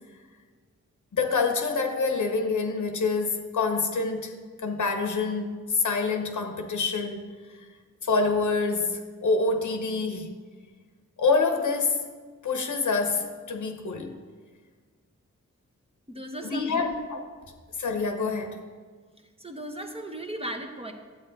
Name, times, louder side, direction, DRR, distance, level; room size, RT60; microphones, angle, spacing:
voice 1, 1.1-7.2 8.0-10.4 11.2-12.1 12.4-14.2 16.4-17.2 17.8-18.7, left 4 dB, 85° left, 4 dB, 1.0 m, -26 dB
voice 2, 16.1-17.0 19.4-20.9, equal, 20° right, 3 dB, 1.1 m, -36 dB
11.0 x 8.2 x 4.0 m, 1.5 s
wide cardioid pair, 65°, 29 cm